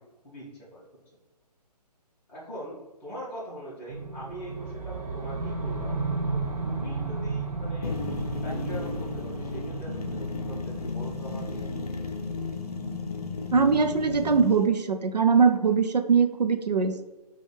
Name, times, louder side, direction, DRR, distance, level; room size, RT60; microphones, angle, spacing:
voice 1, 0.2-0.9 2.3-8.0 8.4-11.7, right 1 dB, 10° left, -8 dB, 0.8 m, -42 dB
sound 1, 3.9-14.0, right 3 dB, 60° right, 0.8 m, -34 dB
sound 2, 7.8-14.6, left 4 dB, 65° left, 0.5 m, -34 dB
voice 2, 13.5-17.1, right 5 dB, 75° right, 8 dB, 0.4 m, -22 dB
5.9 x 2.3 x 3.3 m, 1.2 s
figure-of-eight pair, 140°, 21 cm